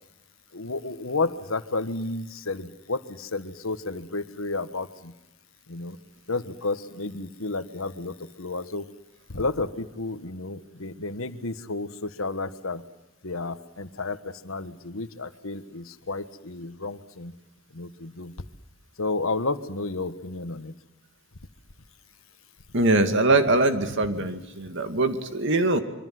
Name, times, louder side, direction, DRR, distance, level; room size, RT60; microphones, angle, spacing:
voice 1, 0.5-5.1 5.7-6.0 6.3-8.8 9.3-12.8 13.2-17.3 17.7-18.3 19.0-20.7, left 3 dB, 70° left, 10 dB, 1.5 m, -31 dB
voice 2, 22.7-25.8, right 2 dB, 60° right, 7 dB, 2.4 m, -22 dB
26.0 x 24.5 x 7.8 m, 0.90 s
head